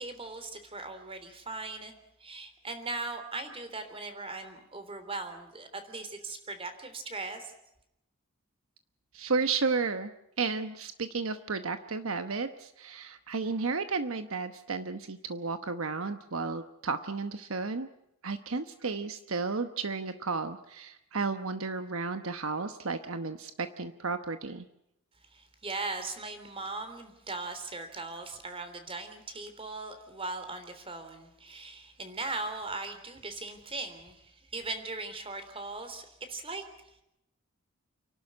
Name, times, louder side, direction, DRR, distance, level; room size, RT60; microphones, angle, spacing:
voice 1, 0.0-7.5 25.3-36.6, right 3 dB, 25° right, 8 dB, 3.5 m, -39 dB
voice 2, 9.1-10.1 10.4-17.9 18.2-24.7, right 4 dB, 65° right, 9 dB, 1.0 m, -33 dB
29.5 x 12.0 x 9.6 m, 0.84 s
head